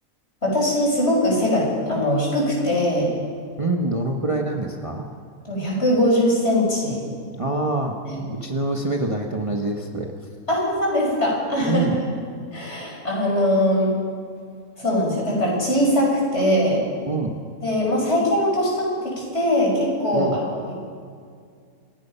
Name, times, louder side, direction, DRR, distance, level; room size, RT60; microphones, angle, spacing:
voice 1, 0.4-3.1 5.5-7.0 8.0-8.2 10.5-11.9 12.5-13.9 14.8-16.8 17.6-20.7, left 1 dB, 50° left, -2 dB, 6.6 m, -21 dB
voice 2, 3.6-5.1 7.4-8.0 8.4-10.1 11.6-12.0 17.0-17.4 20.1-20.4, right 2 dB, 25° right, 1 dB, 1.3 m, -25 dB
27.5 x 17.0 x 5.7 m, 2.1 s
omnidirectional pair, 1.5 m